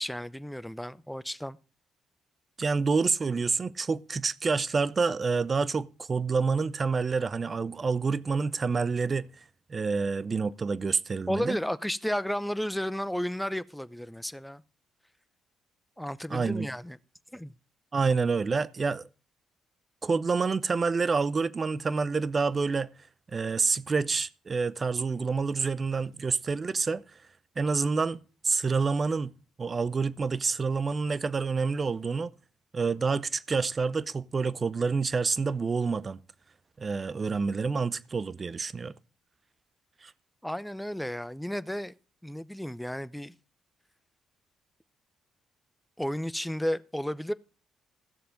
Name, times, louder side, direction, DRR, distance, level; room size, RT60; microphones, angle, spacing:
voice 1, 0.0-1.6 11.3-14.6 16.0-17.0 17.3-17.5 40.4-41.9 42.2-43.3 46.0-47.3, equal, 5° left, 0.7 m, -33 dB
voice 2, 2.6-9.3 9.7-11.6 16.3-16.7 17.9-19.1 20.0-22.9 23.3-27.0 27.6-29.3 29.6-32.3 32.7-36.2 36.8-38.9 40.0-40.1, right 4 dB, 40° right, 0.6 m, -28 dB
15.0 x 6.8 x 5.1 m
hypercardioid pair, 45°, 0 cm